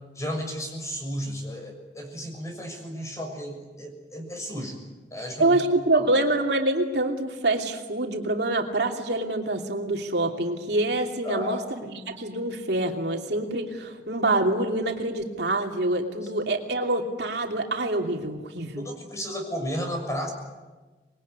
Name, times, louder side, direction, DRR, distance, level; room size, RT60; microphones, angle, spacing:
voice 1, 0.1-4.8 5.1-5.6 5.9-6.1 11.2-11.6 16.2-16.3 18.7-20.3, equal, 20° left, 3 dB, 6.6 m, -33 dB
voice 2, 5.4-18.8, right 2 dB, 65° right, 2 dB, 2.8 m, -26 dB
26.5 x 21.5 x 9.6 m, 1.2 s
head